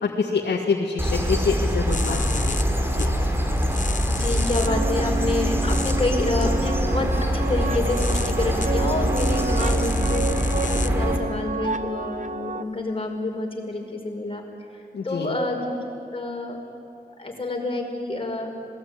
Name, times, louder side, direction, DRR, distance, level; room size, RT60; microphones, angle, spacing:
voice 1, 0.0-2.6 2.9-3.1 14.9-15.3, left 5 dB, 90° left, -2 dB, 2.1 m, -26 dB
sound 1, 1.0-11.2, equal, 15° right, 3.6 m, -24 dB
sound 2, 1.9-2.6 3.0-3.1 3.6-4.7 5.7-5.9 6.4-6.5 7.6-8.7 9.2-10.9, left 5 dB, 45° left, 0.9 m, -33 dB
voice 2, 4.1-14.4 14.7-15.8 16.1-16.6 17.2-18.5, left 2 dB, 30° left, 1 dB, 5.1 m, -28 dB
sound 3, 4.6-12.6, right 4 dB, 45° right, 1.0 m, -30 dB
26.5 x 19.5 x 9.6 m, 2.7 s
wide cardioid pair, 80°, 17 cm